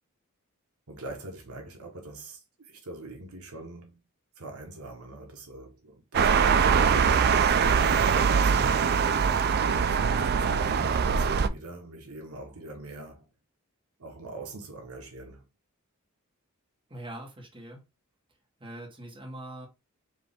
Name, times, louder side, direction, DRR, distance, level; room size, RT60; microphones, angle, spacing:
voice 1, 0.9-4.0 4.4-8.8 9.6-13.3 14.0-15.4, right 2 dB, 80° right, 1.2 m, -43 dB
sound 1, 6.1-11.5, right 6 dB, 45° right, 0.4 m, -22 dB
voice 2, 16.9-17.8 18.6-19.7, right 1 dB, 25° right, 1.5 m, -42 dB
4.8 x 2.8 x 3.5 m
head